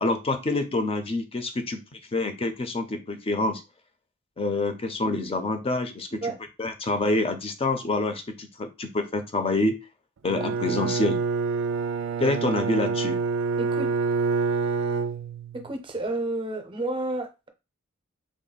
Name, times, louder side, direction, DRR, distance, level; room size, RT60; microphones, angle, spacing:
voice 1, 0.0-3.6 4.4-6.3 6.6-9.8 10.2-11.2 12.2-13.2, left 2 dB, 30° left, 0.5 m, -27 dB
Bowed string instrument, 10.3-15.7, right 4 dB, 65° right, 0.4 m, -27 dB
voice 2, 13.6-13.9 15.5-17.5, right 2 dB, 25° right, 0.6 m, -31 dB
3.6 x 2.1 x 3.9 m
head